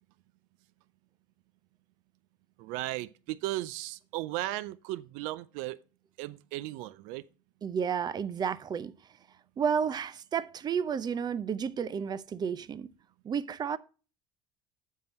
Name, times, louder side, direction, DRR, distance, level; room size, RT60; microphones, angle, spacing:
voice 1, 2.6-5.8 6.2-7.2, right 17 dB, 80° right, 0.5 m, -36 dB
voice 2, 7.6-8.9 9.6-12.9 13.2-13.8, right 7 dB, 30° right, 0.5 m, -31 dB
7.8 x 5.6 x 4.2 m
supercardioid pair, 105°, 13 cm